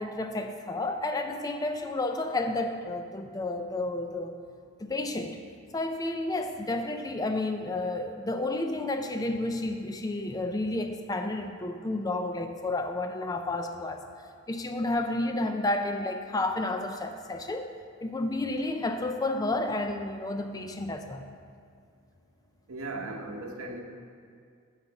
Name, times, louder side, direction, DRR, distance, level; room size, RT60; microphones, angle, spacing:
voice 1, 0.0-4.3 4.8-5.4 5.7-14.0 14.5-17.7 18.0-21.3, left 2 dB, 15° left, 6 dB, 0.4 m, -31 dB
voice 2, 22.7-23.8, right 2 dB, 85° right, 3 dB, 0.9 m, -37 dB
6.5 x 5.6 x 7.1 m, 2.2 s
head